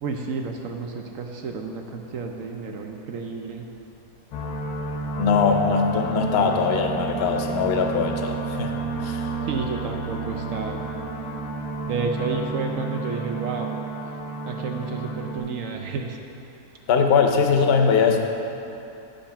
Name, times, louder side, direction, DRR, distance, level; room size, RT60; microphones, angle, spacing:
voice 1, 0.0-3.7 9.4-10.8 11.9-13.7 14.5-16.2 17.5-17.8, right 4 dB, 65° right, 3 dB, 0.9 m, -31 dB
sound 1, 4.3-15.4, right 3 dB, 90° left, 1.3 m, -31 dB
voice 2, 5.2-8.7 9.0-9.3 16.9-18.2, left 5 dB, 55° left, 3 dB, 0.8 m, -21 dB
8.8 x 5.3 x 5.8 m, 2.8 s
omnidirectional pair, 1.7 m